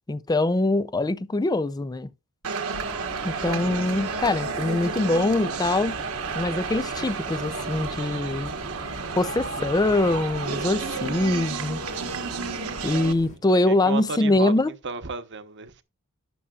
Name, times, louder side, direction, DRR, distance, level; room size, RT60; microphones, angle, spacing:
voice 1, 0.1-2.1 3.2-6.0 6.3-8.5 9.1-11.8 12.8-14.7, left 2 dB, 15° left, 0.4 m, -23 dB
sound 1, 2.4-13.1, right 4 dB, 70° right, 1.3 m, -31 dB
sound 2, 2.7-13.4, left 1 dB, 35° left, 1.5 m, -43 dB
voice 2, 3.7-4.1 10.8-11.2 13.3-14.5 14.8-15.8, right 4 dB, 55° right, 1.1 m, -35 dB
12.5 x 8.7 x 2.4 m
head